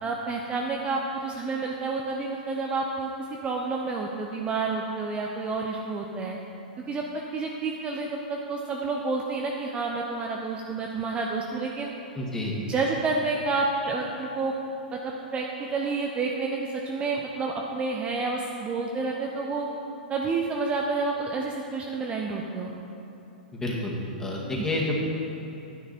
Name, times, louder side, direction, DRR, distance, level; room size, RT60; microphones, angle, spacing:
voice 1, 0.0-3.1 3.4-6.4 6.9-11.9 12.6-14.5 14.9-15.0 15.3-19.7 20.1-22.7 24.6-24.7, right 3 dB, 25° right, 0 dB, 0.7 m, -29 dB
voice 2, 12.2-12.5 23.5-23.9 24.2-25.1, left 1 dB, 10° left, -4 dB, 2.1 m, -29 dB
10.0 x 9.0 x 4.3 m, 2.9 s
hypercardioid pair, 110°, 5 cm